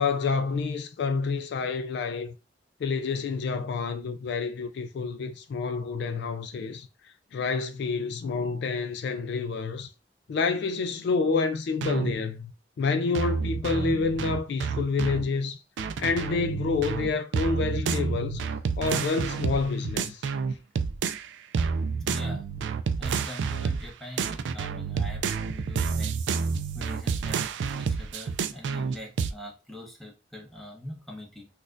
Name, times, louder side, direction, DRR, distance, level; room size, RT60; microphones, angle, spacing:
voice 1, 0.0-2.4 2.8-6.9 7.3-9.9 10.3-12.5 12.8-15.6 16.0-18.4 18.8-20.2, left 4 dB, 65° left, 0.3 m, -28 dB
sound 1, 11.8-12.1 13.1-15.2 15.8-21.3 21.5-23.9 24.2-29.3, right 5 dB, 70° right, 0.3 m, -29 dB
voice 2, 22.0-22.4 23.0-26.2 26.7-31.5, left 1 dB, ahead, 0.9 m, -43 dB
4.1 x 2.3 x 2.5 m
head